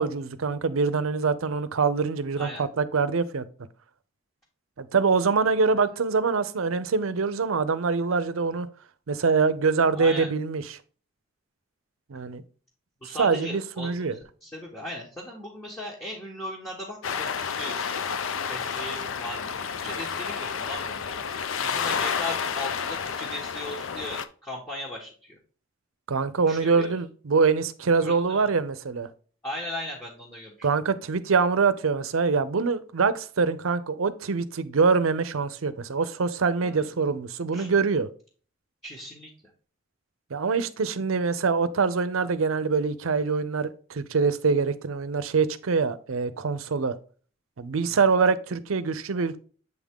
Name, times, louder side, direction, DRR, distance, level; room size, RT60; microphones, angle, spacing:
voice 1, 0.0-3.5 4.8-8.7 9.1-10.8 12.1-12.4 13.2-14.2 26.1-29.1 30.6-38.1 40.3-47.0 47.6-49.4, right 5 dB, 85° right, 0.6 m, -24 dB
voice 2, 9.9-10.3 13.0-17.8 18.4-25.4 26.5-26.9 28.0-28.5 29.4-30.7 36.6-36.9 37.5-37.7 38.8-39.3 47.9-48.0, left 1 dB, 15° left, 1.1 m, -38 dB
sound 1, 17.0-24.2, left 6 dB, 75° left, 0.5 m, -30 dB
7.8 x 3.6 x 3.6 m
head